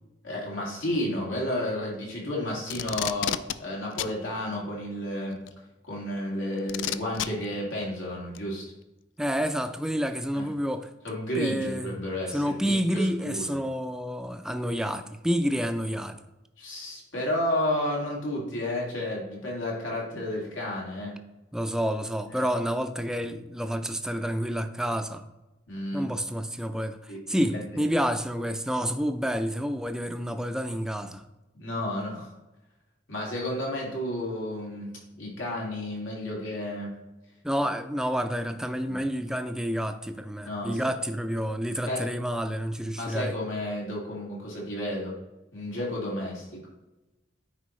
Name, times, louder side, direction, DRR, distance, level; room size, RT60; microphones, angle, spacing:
voice 1, 0.2-5.4 5.9-8.7 10.3-10.5 11.0-13.5 16.6-21.1 22.4-22.5 25.7-26.0 27.1-27.8 31.5-32.3 33.1-34.9 35.2-36.9 38.9-39.0 40.5-40.8 41.9-42.1 42.9-45.1 45.5-46.6, left 1 dB, 90° left, 2.3 m, -32 dB
Packing tape duct tape, 2.7-3.6 4.0-4.1 5.5-5.6 6.7-7.3 8.4-8.5, left 11 dB, 70° left, 0.3 m, -30 dB
voice 2, 9.2-10.9 11.4-12.0 12.3-16.2 21.5-25.2 25.9-31.2 37.4-43.3, equal, 5° right, 0.3 m, -29 dB
9.7 x 4.5 x 3.1 m
head